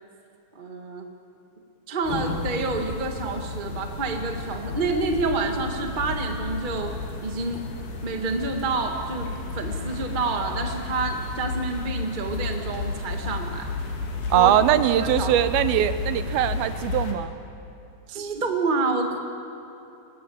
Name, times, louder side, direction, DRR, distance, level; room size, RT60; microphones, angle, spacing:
voice 1, 0.5-1.1 1.9-6.9 7.2-7.6 8.0-13.7 14.3-14.5 15.0-15.3 18.1-19.2, right 3 dB, 35° right, 4 dB, 0.8 m, -28 dB
sound 1, 2.0-17.1, left 3 dB, 80° left, 4.1 m, -32 dB
voice 2, 14.3-17.3, right 11 dB, 85° right, 12 dB, 2.7 m, -21 dB
23.5 x 18.5 x 8.7 m, 2.9 s
omnidirectional pair, 4.3 m